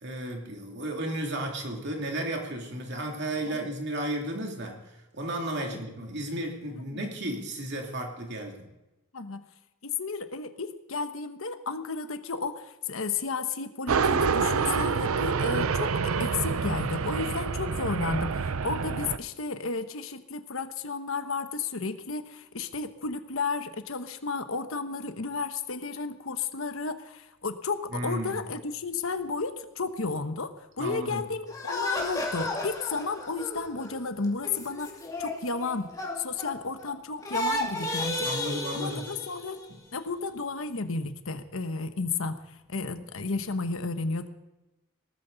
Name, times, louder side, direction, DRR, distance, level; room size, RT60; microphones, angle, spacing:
voice 1, 0.0-4.8 5.1-8.6 27.9-28.4 30.8-31.2 38.2-39.1 39.7-39.8, right 1 dB, 55° right, 2 dB, 2.7 m, -33 dB
voice 2, 9.8-35.9 36.2-38.3 38.7-39.6 39.9-44.3, left 4 dB, 70° left, 9 dB, 1.1 m, -33 dB
sound 1, 13.9-19.2, right 5 dB, 80° right, 0.6 m, -27 dB
sound 2, 31.5-36.9 37.2-39.7, left 2 dB, 15° left, 2.4 m, -33 dB
18.0 x 14.0 x 4.0 m, 0.99 s
head